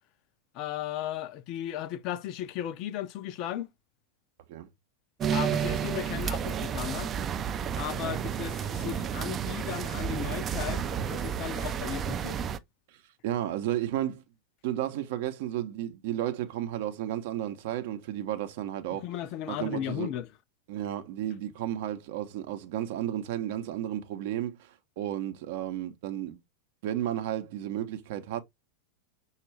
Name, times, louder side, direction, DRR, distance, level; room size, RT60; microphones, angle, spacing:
voice 1, 0.5-3.7 5.3-7.1 7.8-12.4 18.9-20.3, left 11 dB, 40° left, 0.4 m, -36 dB
sound 1, 5.2-12.6, right 8 dB, 25° right, 0.4 m, -31 dB
voice 2, 13.2-14.2 14.6-19.1 19.5-20.1 20.7-26.4 26.8-28.4, right 12 dB, 50° right, 0.7 m, -33 dB
5.9 x 2.3 x 3.3 m
figure-of-eight pair, 90°, 0 cm